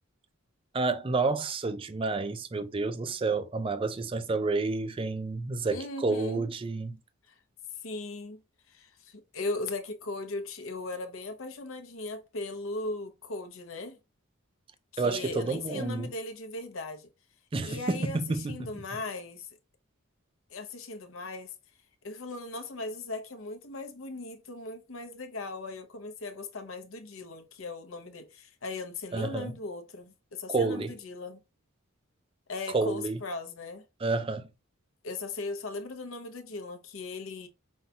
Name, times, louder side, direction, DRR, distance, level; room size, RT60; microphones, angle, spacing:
voice 1, 0.7-7.0 15.0-16.1 17.5-18.8 29.1-29.5 30.5-30.9 32.7-33.2 34.0-34.5, right 3 dB, 25° right, 0.4 m, -30 dB
voice 2, 5.7-6.5 7.3-7.4 7.8-8.4 8.7-14.0 14.9-17.1 17.6-19.5 20.5-21.5 22.0-31.4 32.5-33.8 35.0-37.5, left 2 dB, 75° left, 0.8 m, -38 dB
5.4 x 2.3 x 2.7 m
head